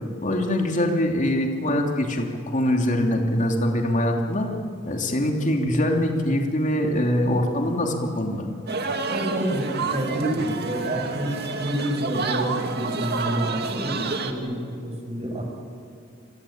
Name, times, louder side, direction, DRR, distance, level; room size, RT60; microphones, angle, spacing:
voice 1, 0.2-4.5 4.8-8.5, left 1 dB, 40° left, 2 dB, 3.0 m, -23 dB
sound 1, 8.7-14.3, right 4 dB, 55° right, 2.3 m, -29 dB
voice 2, 9.1-15.4, right 1 dB, 35° right, 2 dB, 5.8 m, -28 dB
28.5 x 23.5 x 8.8 m, 2.3 s
head